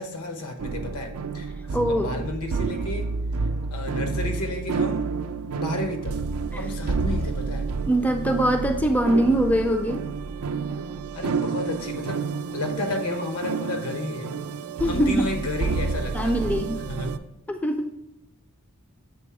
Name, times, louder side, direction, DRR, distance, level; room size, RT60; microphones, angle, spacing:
voice 1, 0.0-1.5 1.9-3.1 3.7-5.0 5.5-6.2 6.5-7.7 11.1-12.2 12.5-14.5 14.9-16.3 16.8-17.1, left 2 dB, 80° left, 5 dB, 0.9 m, -32 dB
sound 1, 0.6-17.2, right 4 dB, 70° right, 0.4 m, -29 dB
voice 2, 1.7-2.2 6.5-6.6 7.9-10.0 14.8-15.3 16.1-16.8 17.5-17.9, right 1 dB, 5° left, 5 dB, 0.3 m, -22 dB
7.0 x 3.3 x 4.7 m, 0.86 s
head